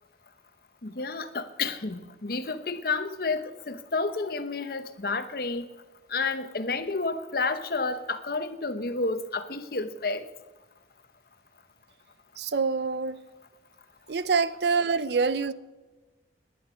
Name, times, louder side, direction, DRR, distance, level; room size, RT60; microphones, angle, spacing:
voice 1, 0.8-5.7 6.1-10.3, left 3 dB, 55° left, 0.9 m, -30 dB
voice 2, 12.4-13.2 14.1-15.5, right 5 dB, 65° right, 0.5 m, -26 dB
18.5 x 10.5 x 5.1 m
head